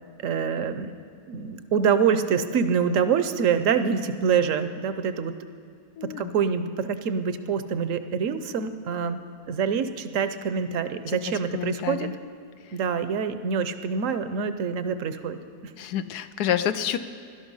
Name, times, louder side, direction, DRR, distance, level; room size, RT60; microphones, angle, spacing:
voice 1, 0.2-0.9 1.3-5.4 6.0-9.2 9.5-12.1 12.7-15.4 15.6-15.7, right 6 dB, 65° right, 11 dB, 1.0 m, -25 dB
voice 2, 6.0-6.3 11.1-11.2 11.5-12.1 12.6-12.8 15.8-17.0, left 10 dB, 85° left, 11 dB, 1.2 m, -28 dB
18.0 x 12.0 x 5.5 m, 2.4 s
omnidirectional pair, 1.7 m